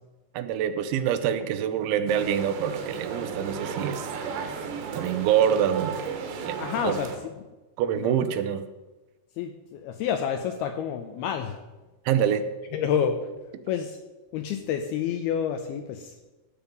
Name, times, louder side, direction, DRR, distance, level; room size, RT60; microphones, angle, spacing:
voice 1, 0.3-4.1 4.9-6.1 6.5-6.6 6.8-7.0 7.8-8.6 12.1-12.4, right 9 dB, 90° right, 10 dB, 3.2 m, -25 dB
sound 1, 2.1-7.2, right 6 dB, 75° right, 3.5 m, -34 dB
voice 2, 6.6-7.1 8.0-8.2 9.4-11.6 12.7-13.2 13.7-14.0 14.3-16.1, left 8 dB, 80° left, 7 dB, 2.3 m, -29 dB
16.5 x 7.1 x 5.2 m, 1.1 s
omnidirectional pair, 5.2 m